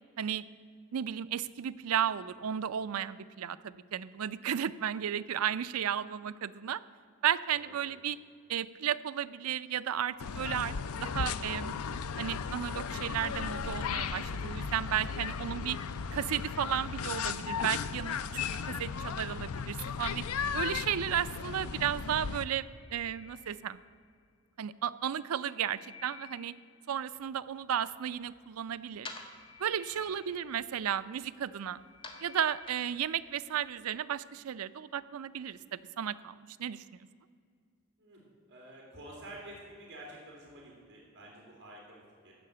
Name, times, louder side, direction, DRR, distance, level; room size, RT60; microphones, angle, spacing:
voice 1, 0.9-6.8 7.2-8.2 8.5-11.7 12.2-15.8 16.1-20.2 20.5-22.7 22.9-23.8 24.6-26.5 26.9-29.1 29.6-31.8 32.2-36.3 36.6-36.8, right 9 dB, 85° right, 15 dB, 0.4 m, -34 dB
voice 2, 7.5-7.9 29.9-30.2 38.0-38.2 38.5-42.3, right 1 dB, 55° right, -3 dB, 2.7 m, -50 dB
sound 1, 10.2-22.4, left 6 dB, 85° left, 0.5 m, -36 dB
sound 2, 22.7-24.1 25.1-26.9 28.9-31.0 31.5-33.0, left 7 dB, 15° right, 1.8 m, -56 dB
sound 3, 27.2-33.6, left 2 dB, 25° left, 1.3 m, -53 dB
14.5 x 5.7 x 8.5 m, 2.3 s
head